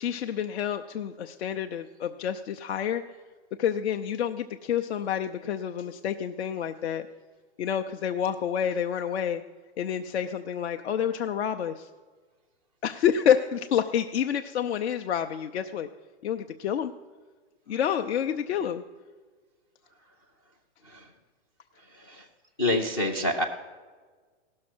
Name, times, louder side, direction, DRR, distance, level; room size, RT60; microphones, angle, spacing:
voice 1, 0.0-3.0 3.6-7.0 7.6-9.4 9.8-11.9 12.8-15.9 16.2-16.9 17.7-18.8, left 9 dB, 70° left, 6 dB, 0.6 m, -28 dB
voice 2, 21.9-22.2 22.6-23.4, left 1 dB, 20° left, 6 dB, 0.4 m, -27 dB
16.5 x 6.5 x 6.0 m, 1.4 s
hypercardioid pair, 170°, 35 cm